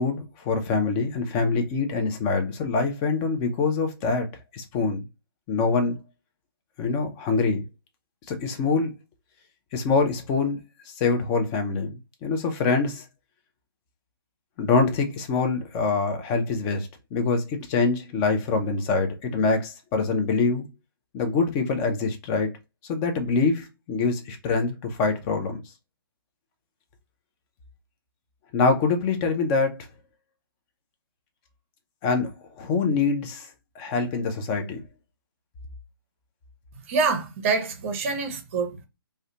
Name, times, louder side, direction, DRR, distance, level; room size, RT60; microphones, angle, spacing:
voice 1, 0.0-4.3 4.5-5.0 5.5-6.0 6.8-7.7 8.3-8.9 9.7-10.6 10.9-13.0 14.6-20.7 21.1-22.5 22.9-25.6 28.5-29.8 32.0-33.5 33.8-34.8, left 4 dB, 20° left, 0.4 m, -25 dB
voice 2, 36.9-38.8, right 4 dB, 35° right, 0.6 m, -26 dB
2.3 x 2.1 x 2.8 m
figure-of-eight pair, 140°, 13 cm